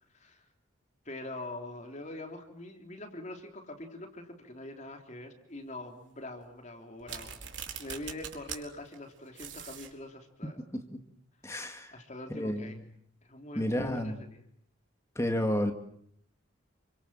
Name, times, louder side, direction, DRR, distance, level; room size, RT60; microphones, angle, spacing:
voice 1, 0.1-0.5 1.1-10.6 11.9-12.8 13.2-14.4, left 2 dB, 35° left, 4 dB, 3.5 m, -44 dB
sound 1, 7.0-8.6 8.9-9.0 9.3-9.9, right 8 dB, 60° right, 4.6 m, -41 dB
voice 2, 11.4-11.9 12.3-12.8 13.6-14.2 15.2-15.7, equal, 15° left, 5 dB, 2.4 m, -31 dB
29.0 x 24.5 x 7.6 m, 0.69 s
head